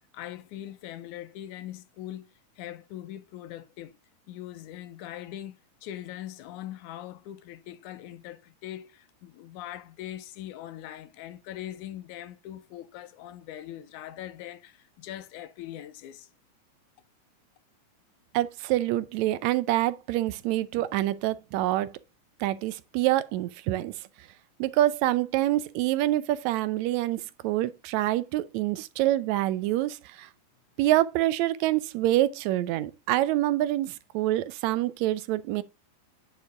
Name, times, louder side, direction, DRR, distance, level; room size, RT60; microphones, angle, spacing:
voice 1, 0.1-4.0 4.3-16.3, left 12 dB, 80° left, 2.0 m, -41 dB
voice 2, 18.3-21.9 22.4-24.0 24.6-30.3 30.8-35.6, right 15 dB, 75° right, 1.8 m, -26 dB
9.4 x 6.7 x 3.8 m
omnidirectional pair, 3.7 m